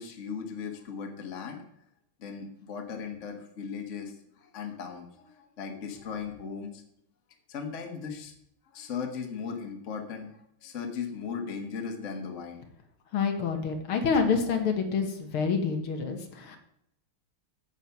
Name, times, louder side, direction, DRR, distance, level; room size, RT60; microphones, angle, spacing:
voice 1, 0.0-1.6 2.2-6.8 7.5-8.3 8.7-12.6, left 6 dB, 40° left, 4 dB, 1.6 m, -37 dB
voice 2, 13.1-16.6, left 5 dB, 80° left, 5 dB, 2.2 m, -27 dB
9.1 x 7.4 x 5.8 m, 0.74 s
omnidirectional pair, 2.3 m